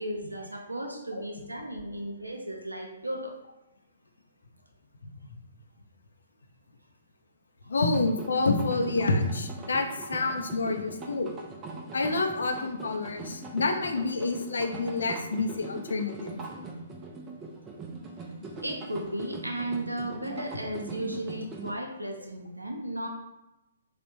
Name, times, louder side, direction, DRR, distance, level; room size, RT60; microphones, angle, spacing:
voice 1, 0.0-3.3 18.6-23.1, right 1 dB, 90° right, 2 dB, 0.5 m, -35 dB
voice 2, 7.7-11.3 11.9-16.4 20.3-20.4, left 3 dB, 65° left, 5 dB, 0.4 m, -28 dB
sound 1, 7.9-21.7, right 3 dB, 20° right, 0.3 m, -41 dB
3.2 x 2.1 x 2.9 m, 0.96 s
figure-of-eight pair, 130°, 0 cm